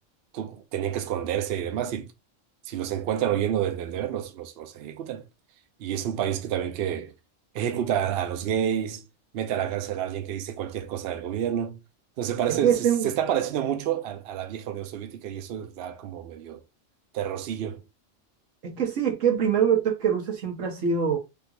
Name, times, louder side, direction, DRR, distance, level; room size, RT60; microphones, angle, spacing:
voice 1, 0.3-2.1 2.7-5.2 5.8-7.1 7.5-9.0 9.3-11.8 12.2-16.6 17.1-17.8, right 10 dB, 65° right, 0.7 m, -29 dB
voice 2, 12.6-13.1 18.6-21.2, right 7 dB, 85° right, 1.4 m, -23 dB
3.6 x 2.4 x 2.8 m
omnidirectional pair, 1.3 m